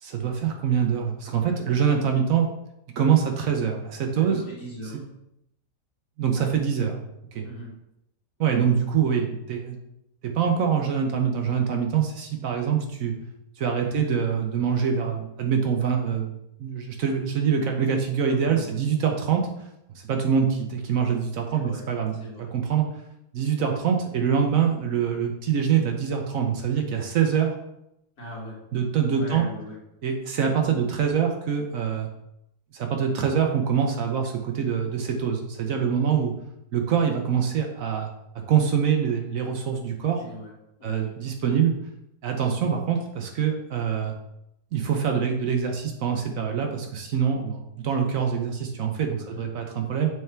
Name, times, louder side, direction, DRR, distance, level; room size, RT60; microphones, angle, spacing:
voice 1, 0.0-2.5 3.0-4.4 6.2-7.0 7.3-7.5 8.4-9.8 10.2-13.1 13.6-16.3 16.6-19.5 19.9-22.9 23.3-27.5 28.7-29.5 30.0-32.1 32.7-36.3 36.7-38.1 38.5-40.2 40.8-41.7 42.2-44.1 44.7-50.1, right 7 dB, 65° right, 3 dB, 1.0 m, -24 dB
voice 2, 4.2-5.0 7.4-7.7 13.8-14.1 18.2-18.8 21.5-21.8 22.2-22.5 28.2-28.6 29.1-29.8 35.9-36.0 40.2-40.5 40.8-41.1 49.1-49.4, equal, 70° left, -4 dB, 2.3 m, -39 dB
6.4 x 3.5 x 4.4 m, 0.82 s
omnidirectional pair, 1.7 m